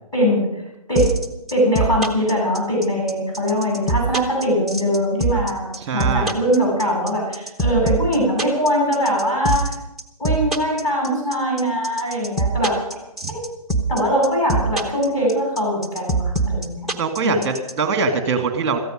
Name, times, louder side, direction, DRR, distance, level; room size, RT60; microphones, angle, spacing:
voice 1, 0.1-0.5 0.9-1.1 1.5-9.7 10.2-12.8 13.3-13.5 13.9-16.9 17.2-17.4, equal, 15° left, -5 dB, 7.8 m, -21 dB
sound 1, 1.0-17.7, right 2 dB, ahead, 1.0 m, -23 dB
voice 2, 5.8-6.4 13.2-13.3 17.0-18.8, right 4 dB, 20° right, 7 dB, 2.0 m, -22 dB
17.0 x 14.5 x 5.2 m, 0.91 s
figure-of-eight pair, 140°, 19 cm